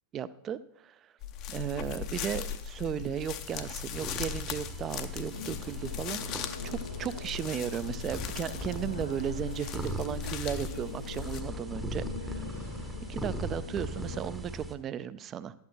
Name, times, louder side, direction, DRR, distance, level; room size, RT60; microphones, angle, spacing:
voice 1, 0.1-1.0 1.5-12.4 13.1-15.5, right 9 dB, 30° right, 15 dB, 0.5 m, -35 dB
sound 1, 1.2-11.4, left 9 dB, 40° left, 0.8 m, -39 dB
sound 2, 3.4-14.7, equal, 10° right, 0.8 m, -40 dB
sound 3, 5.3-14.3, left 1 dB, 85° left, 1.0 m, -43 dB
12.0 x 8.6 x 3.1 m, 0.78 s
figure-of-eight pair, 90°, 0 cm